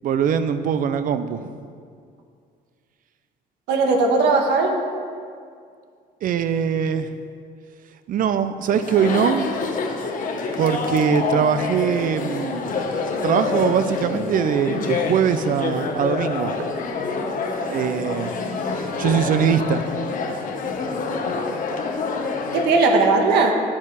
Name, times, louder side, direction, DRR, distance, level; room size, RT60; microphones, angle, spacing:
voice 1, 0.0-1.6 6.2-7.1 8.1-9.5 10.6-12.7 13.2-16.6 17.7-18.3 18.6-19.8, right 7 dB, 55° right, 11 dB, 0.6 m, -22 dB
voice 2, 3.7-4.8 16.6-16.7 22.5-23.5, right 3 dB, 85° right, 3 dB, 1.3 m, -18 dB
Chatter, 8.7-22.8, left 4 dB, 50° left, 1.1 m, -27 dB
10.0 x 7.3 x 4.7 m, 2.2 s
cardioid pair, 110°, 17 cm